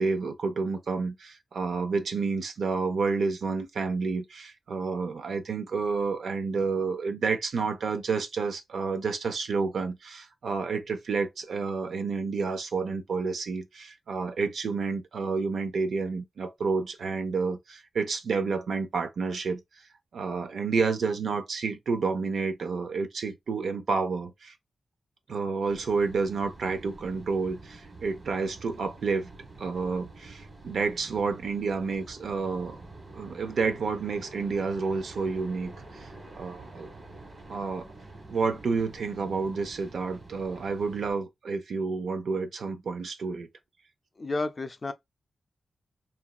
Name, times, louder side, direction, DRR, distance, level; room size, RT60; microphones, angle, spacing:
voice 1, 0.0-19.6 20.1-24.5 25.3-29.3 29.6-32.8 33.1-36.1 36.4-36.9 37.5-37.9 38.3-43.5, right 4 dB, 80° right, 0.5 m, -30 dB
sound 1, 25.7-41.1, right 2 dB, 40° right, 1.3 m, -47 dB
voice 2, 44.2-44.9, left 2 dB, 35° left, 0.3 m, -31 dB
3.0 x 2.5 x 2.3 m
wide cardioid pair, 130°, 0 cm